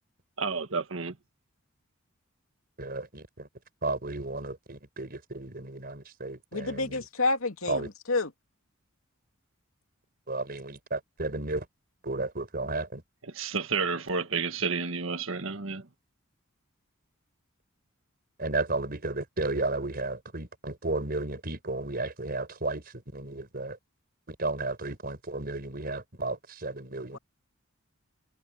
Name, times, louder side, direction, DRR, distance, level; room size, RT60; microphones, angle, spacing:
voice 1, 0.4-1.2 13.3-15.9, right 5 dB, 65° right, 1.6 m, -31 dB
voice 2, 2.8-3.5 3.8-7.0 7.7-7.9 10.3-11.7 12.0-13.0 18.4-23.8 24.3-27.2, right 2 dB, 45° right, 4.9 m, -33 dB
voice 3, 6.5-8.3 27.1-27.2, left 3 dB, 75° left, 2.7 m, -29 dB
head